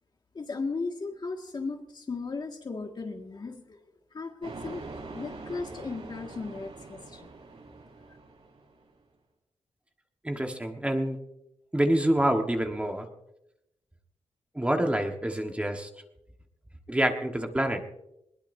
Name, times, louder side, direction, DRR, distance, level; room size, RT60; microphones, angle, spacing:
voice 1, 0.3-3.8 4.1-7.3, left 4 dB, 40° left, 3 dB, 1.9 m, -36 dB
sound 1, 4.4-8.9, right 3 dB, 60° right, 7.3 m, -44 dB
voice 2, 10.2-11.2 11.7-13.1 14.5-15.9 16.9-17.8, right 1 dB, 10° right, 3 dB, 1.4 m, -27 dB
21.0 x 20.5 x 2.7 m, 0.84 s
wide cardioid pair, 145°, 11 cm